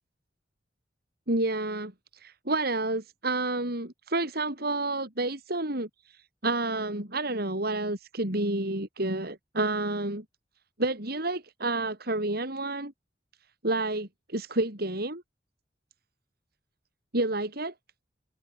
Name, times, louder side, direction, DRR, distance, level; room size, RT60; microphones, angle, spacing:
voice 1, 1.3-1.9 2.2-5.9 6.4-10.2 10.8-12.9 13.6-15.2 17.1-17.7, right 2 dB, 60° right, 6.0 m, -29 dB
head